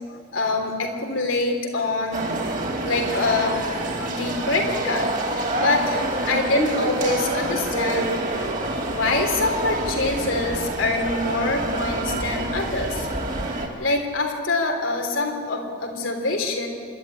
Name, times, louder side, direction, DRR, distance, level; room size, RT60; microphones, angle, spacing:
voice 1, 0.1-2.3 2.6-3.6 4.0-13.1 13.5-16.7, left 2 dB, 85° left, 2 dB, 3.5 m, -25 dB
sound 1, 2.1-13.7, right 2 dB, 40° right, 2.4 m, -27 dB
26.5 x 12.0 x 10.0 m, 2.2 s
head